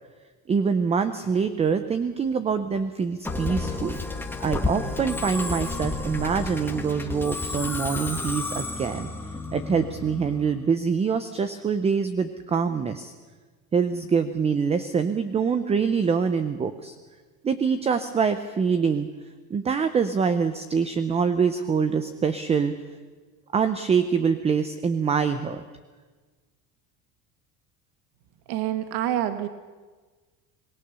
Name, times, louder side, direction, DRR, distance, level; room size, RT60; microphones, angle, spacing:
voice 1, 0.5-4.0 4.4-9.1 9.5-13.1 13.7-17.0 17.4-19.1 19.5-22.7 23.5-25.6, right 6 dB, 15° right, 11 dB, 0.6 m, -25 dB
Musical instrument, 3.2-10.6, left 3 dB, 5° left, 1.4 m, -31 dB
voice 2, 28.5-29.5, right 12 dB, 60° right, 10 dB, 1.4 m, -27 dB
26.5 x 20.5 x 6.9 m, 1.4 s
cardioid pair, 170°, 44 cm